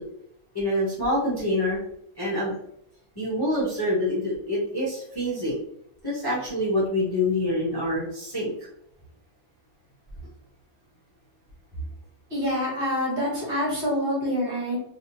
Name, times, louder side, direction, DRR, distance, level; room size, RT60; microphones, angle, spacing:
voice 1, 0.5-1.8 2.2-2.5 3.2-5.6 6.0-8.7, left 1 dB, 15° left, -8 dB, 1.0 m, -26 dB
voice 2, 12.3-14.8, equal, 45° right, -5 dB, 1.7 m, -26 dB
3.6 x 3.0 x 2.9 m, 0.73 s
omnidirectional pair, 1.7 m